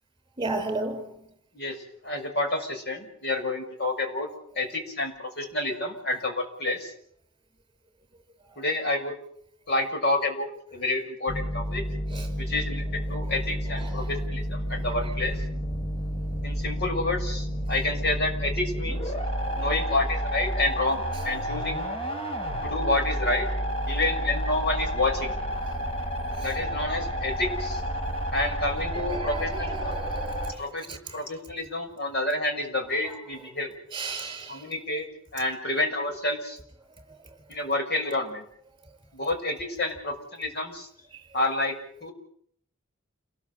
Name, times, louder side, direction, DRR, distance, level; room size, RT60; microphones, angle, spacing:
voice 1, 0.4-1.3 8.5-8.6 12.1-12.3 13.2-13.3 13.7-14.1 15.0-15.1 19.3-19.7 26.4-26.5 28.9-30.6 30.9-31.2 33.0-33.1 33.9-34.7 41.1-41.2, right 3 dB, 25° right, 5.3 m, -35 dB
voice 2, 2.0-4.3 4.6-6.9 8.6-9.2 9.7-11.8 12.4-15.4 16.4-19.1 19.6-21.8 22.6-23.5 23.9-25.3 26.4-27.8 28.3-29.9 30.6-30.8 31.1-33.7 34.5-36.6 37.5-38.4 39.1-40.9 41.3-42.1, left 2 dB, 55° left, 6.2 m, -29 dB
sound 1, 11.3-30.5, equal, 30° left, 5.6 m, -30 dB
29.0 x 20.5 x 8.0 m
head